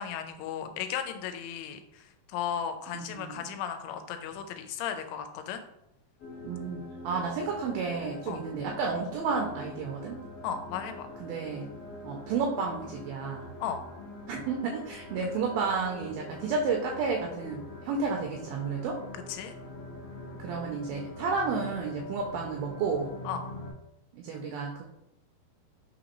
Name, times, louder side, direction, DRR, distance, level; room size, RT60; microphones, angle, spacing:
voice 1, 0.0-5.6 8.3-8.4 10.4-11.1 13.6-13.8 15.2-15.3 19.3-19.5 23.2-23.4, left 8 dB, 85° left, 7 dB, 2.6 m, -35 dB
voice 2, 2.9-3.4 6.4-10.2 11.2-11.7 12.0-13.5 14.3-19.0 20.4-23.1 24.1-24.8, right 5 dB, 80° right, 1 dB, 2.1 m, -31 dB
sound 1, 6.2-23.7, left 2 dB, 70° left, 1.4 m, -44 dB
5.9 x 2.6 x 2.9 m, 0.84 s
omnidirectional pair, 4.6 m